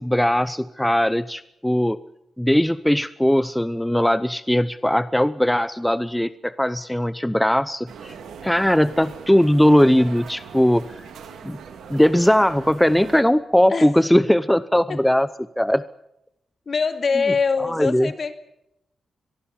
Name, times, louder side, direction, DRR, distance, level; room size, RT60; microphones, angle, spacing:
voice 1, 0.0-2.0 2.4-8.1 8.4-10.8 11.4-11.6 11.9-15.3 15.6-15.8 17.6-18.1, equal, 5° left, 15 dB, 0.8 m, -19 dB
sound 1, 7.9-13.2, right 6 dB, 85° right, 3.2 m, -41 dB
voice 2, 16.7-18.3, left 5 dB, 50° left, 8 dB, 2.7 m, -23 dB
23.0 x 20.5 x 7.3 m, 0.83 s
cardioid pair, 60°, 0 cm